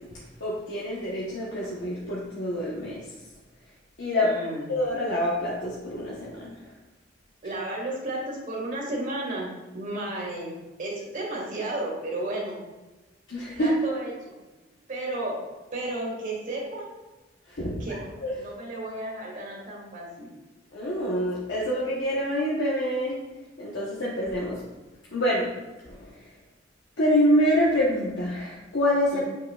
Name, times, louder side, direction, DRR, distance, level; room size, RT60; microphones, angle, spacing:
voice 1, 0.4-3.0 4.0-4.3 4.7-6.5 13.3-13.7 17.5-18.4 20.7-23.2 23.6-24.6 25.1-25.5 25.9-26.0 27.0-29.2, equal, 65° left, -6 dB, 1.0 m, -26 dB
voice 2, 4.2-4.6 7.4-10.5 10.8-12.6 13.6-14.4 14.9-15.3 15.7-16.8 17.8-20.3 29.1-29.2, right 1 dB, 45° right, -3 dB, 1.8 m, -33 dB
7.6 x 5.4 x 2.4 m, 1.1 s
head